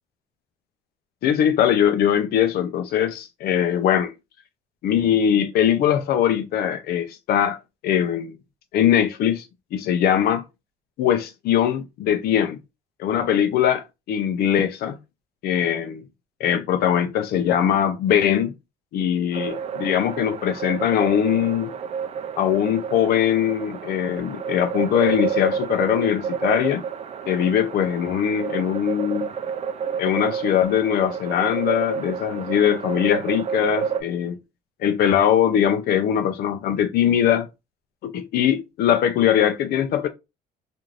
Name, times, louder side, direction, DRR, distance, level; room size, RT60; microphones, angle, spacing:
voice 1, 1.2-4.1 4.8-8.4 8.7-9.5 9.7-10.4 11.0-12.6 13.0-15.0 15.4-16.0 16.4-18.5 18.9-21.8 22.4-26.8 27.3-29.3 30.0-34.4 34.8-37.5 38.0-40.1, left 9 dB, 65° left, 0.5 m, -21 dB
sound 1, 19.3-34.0, right 7 dB, 40° right, 0.4 m, -30 dB
3.1 x 2.6 x 2.4 m
cardioid pair, 110°, 17 cm